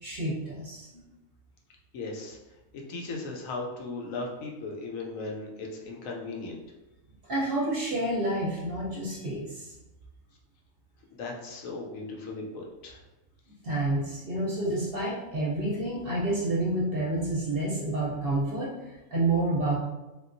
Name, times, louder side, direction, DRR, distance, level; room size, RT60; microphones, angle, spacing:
voice 1, 0.0-0.9 7.3-9.7 13.6-18.7 19.1-19.8, right 2 dB, 55° right, -5 dB, 0.7 m, -29 dB
voice 2, 1.9-2.4 2.9-6.6 11.1-13.0, left 3 dB, 75° left, -1 dB, 1.0 m, -37 dB
3.6 x 2.3 x 2.5 m, 1.1 s
omnidirectional pair, 1.4 m